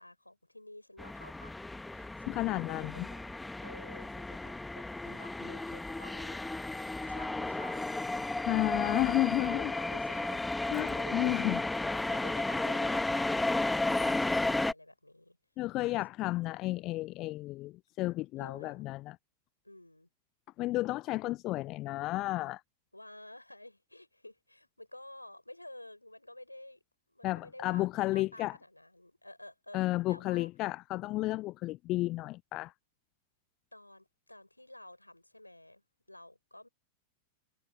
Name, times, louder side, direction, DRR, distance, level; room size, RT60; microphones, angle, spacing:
voice 1, 0.0-1.5 1.9-3.2 3.6-6.4 6.7-8.6 8.8-10.5 10.7-15.4 18.4-18.8 19.6-20.1 22.9-26.8 27.1-30.5 33.7-35.8 36.1-36.7, left 1 dB, 85° left, 5.9 m, -52 dB
sound 1, 1.0-14.7, left 2 dB, 5° left, 1.4 m, -33 dB
voice 2, 2.3-3.1 8.5-9.7 10.7-11.6 15.6-19.2 20.6-22.6 27.2-28.6 29.7-32.7, left 18 dB, 40° left, 0.6 m, -32 dB
figure-of-eight pair, 90°, 0 cm